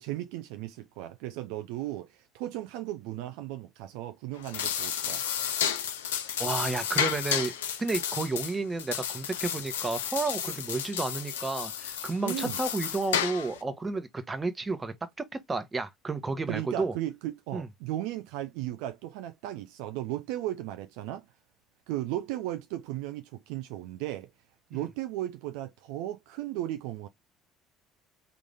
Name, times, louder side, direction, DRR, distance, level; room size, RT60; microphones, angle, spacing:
voice 1, 0.0-5.2 12.2-12.6 16.5-21.3 21.9-24.3 24.7-27.1, right 14 dB, 70° right, 0.4 m, -36 dB
sound 1, 4.3-13.6, left 9 dB, 80° left, 0.5 m, -32 dB
voice 2, 6.4-7.5 7.8-16.9 17.5-17.7 24.7-24.8, right 3 dB, 25° right, 1.0 m, -32 dB
3.8 x 2.4 x 3.3 m
hypercardioid pair, 60°, 0 cm